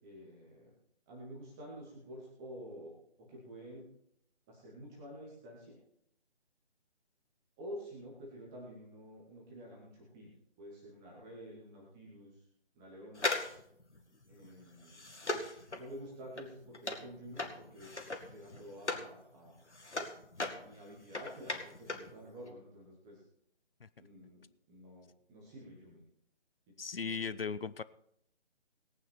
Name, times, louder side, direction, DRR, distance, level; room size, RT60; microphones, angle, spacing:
voice 1, 0.0-0.7 1.1-3.9 4.5-5.8 7.6-10.3 10.6-12.3 12.7-13.3 14.3-15.0 15.8-19.6 20.4-23.2 24.0-26.0 27.0-27.3, equal, 5° right, -4 dB, 0.7 m, -50 dB
sound 1, 13.1-19.1 19.5-22.1 22.4-22.5, left 2 dB, 80° left, 2.2 m, -39 dB
voice 2, 26.8-27.8, left 5 dB, 55° left, 16 dB, 0.6 m, -37 dB
18.5 x 9.5 x 4.3 m, 0.71 s
figure-of-eight pair, 150°, 34 cm